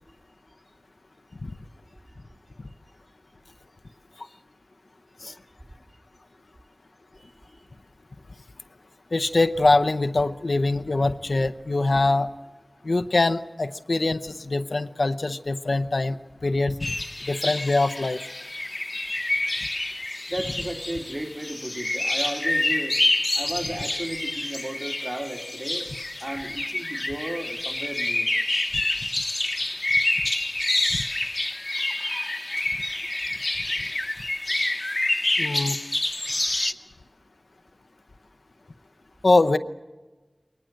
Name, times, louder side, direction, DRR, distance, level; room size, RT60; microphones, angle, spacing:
voice 1, 9.1-12.3 12.8-16.7 17.2-18.2 35.4-35.8 39.2-39.6, left 2 dB, 85° left, 8 dB, 0.8 m, -23 dB
sound 1, 16.8-36.7, left 2 dB, 45° left, 1.0 m, -27 dB
voice 2, 20.3-23.0 23.3-25.9 26.2-28.3, right 1 dB, 40° right, 2 dB, 2.9 m, -34 dB
22.0 x 19.5 x 7.6 m, 1.2 s
wide cardioid pair, 55°, 0 cm